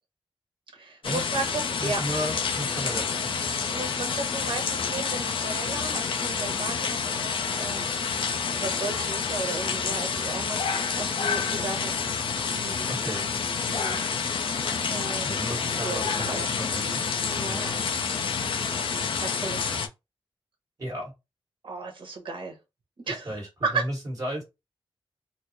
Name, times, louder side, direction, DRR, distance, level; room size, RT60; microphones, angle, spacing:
voice 1, 0.7-2.2 3.7-7.9 8.5-11.9 12.6-12.9 13.7-14.0 14.4-14.6 14.9-15.4 15.8-16.5 17.3-17.8 18.9-19.9 21.6-22.6 23.1-23.3 23.6-23.8, right 3 dB, 60° right, 1.2 m, -34 dB
sound 1, 1.0-19.9, left 6 dB, 65° left, 0.5 m, -28 dB
voice 2, 1.8-3.6 3.9-4.1 12.9-13.3 15.2-16.9 17.5-17.6 20.8-21.1 23.1-24.4, equal, 40° right, 1.8 m, -34 dB
4.2 x 2.0 x 2.9 m
wide cardioid pair, 150°, 9 cm